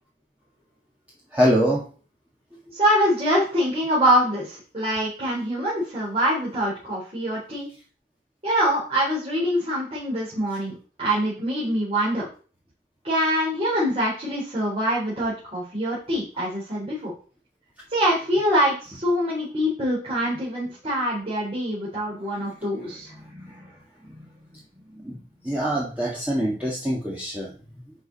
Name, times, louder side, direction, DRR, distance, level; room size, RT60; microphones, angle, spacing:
voice 1, 1.3-1.9 23.2-23.6 24.0-24.2 24.9-25.2 25.4-27.5, equal, 10° right, -6 dB, 1.9 m, -24 dB
voice 2, 2.7-7.7 8.4-12.3 13.0-17.1 17.9-23.1, equal, 35° right, -8 dB, 4.6 m, -24 dB
11.0 x 5.1 x 4.3 m, 0.38 s
head